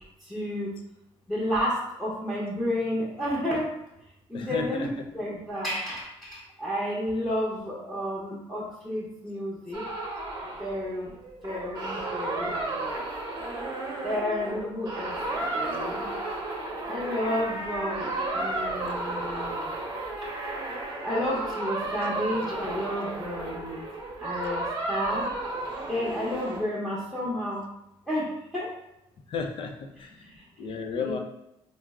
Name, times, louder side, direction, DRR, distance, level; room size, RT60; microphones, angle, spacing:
voice 1, 0.2-0.7 1.3-3.7 4.3-9.8 10.6-11.1 11.4-13.0 14.0-16.1 16.8-19.7 21.0-23.8 24.2-25.3 25.9-27.6 28.1-28.7 30.2-30.4 31.0-31.2, left 1 dB, 5° left, -9 dB, 0.8 m, -31 dB
voice 2, 4.3-4.9 29.3-30.1 30.6-31.2, left 5 dB, 55° left, 4 dB, 0.5 m, -33 dB
sound 1, 9.7-26.6, right 2 dB, 40° right, 0.8 m, -33 dB
3.4 x 2.1 x 3.5 m, 0.84 s
cardioid pair, 130°, 10 cm